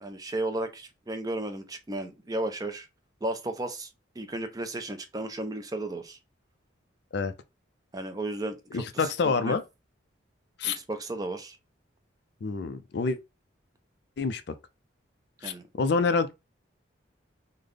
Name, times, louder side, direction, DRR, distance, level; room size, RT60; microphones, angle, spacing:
voice 1, 0.0-2.9 3.2-3.9 4.2-6.2 7.9-9.6 10.6-11.6 15.4-15.7, right 2 dB, 20° right, 0.4 m, -34 dB
voice 2, 8.7-9.6 10.6-10.8 12.4-13.2 14.2-14.4 15.4-16.3, left 4 dB, 55° left, 0.4 m, -27 dB
3.3 x 2.1 x 3.8 m
head